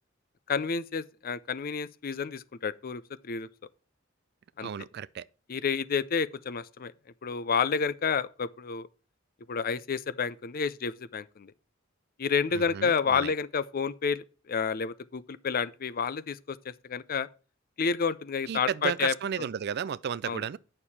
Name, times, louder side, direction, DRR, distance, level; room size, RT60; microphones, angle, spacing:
voice 1, 0.5-3.5 4.6-4.7 5.5-6.9 7.2-8.9 9.5-11.5 12.2-17.3 17.8-19.1 20.3-20.4, left 5 dB, 45° left, 0.5 m, -30 dB
voice 2, 4.6-5.3 12.5-13.3 18.5-20.6, right 8 dB, 55° right, 0.4 m, -33 dB
9.0 x 6.6 x 4.2 m
head